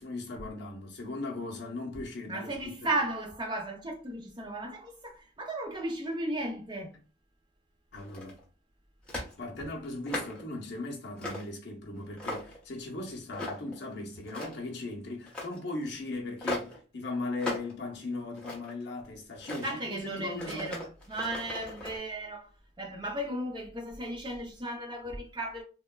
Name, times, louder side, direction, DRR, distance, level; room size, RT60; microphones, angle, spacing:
voice 1, 0.0-2.9 7.9-8.4 9.4-20.7, left 2 dB, 55° left, 0.7 m, -38 dB
voice 2, 2.3-7.0 19.6-22.5 22.8-25.6, right 1 dB, 20° right, 0.5 m, -35 dB
sound 1, 7.9-8.4 9.1-9.3 9.8-10.4 11.2-11.5 11.9-12.6 13.3-13.8 14.2-14.7 15.2-15.6 16.4-16.8 17.4-17.7 18.1-18.8 19.3-19.7 20.3-22.0, left 2 dB, 5° left, 0.7 m, -38 dB
3.1 x 2.1 x 2.2 m
head